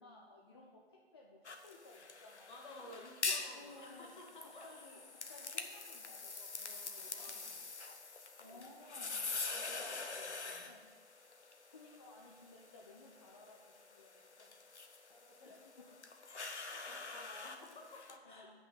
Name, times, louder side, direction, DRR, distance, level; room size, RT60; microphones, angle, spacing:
voice 1, 0.0-2.5 3.5-4.1 4.6-5.0 5.3-7.2 8.4-9.3 9.8-10.0 10.6-10.8 11.7-14.6 15.4-15.8 16.6-16.7 18.2-18.5, left 2 dB, 25° left, -3 dB, 0.7 m, -58 dB
sound 1, 1.4-18.2, left 4 dB, 80° left, 1.1 m, -45 dB
voice 2, 2.5-5.0 6.6-7.6 8.5-8.7 9.3-10.8 15.1-15.9 16.7-18.5, left 2 dB, 45° left, -1 dB, 2.0 m, -55 dB
8.3 x 5.7 x 6.8 m, 1.4 s
figure-of-eight pair, 150°, 33 cm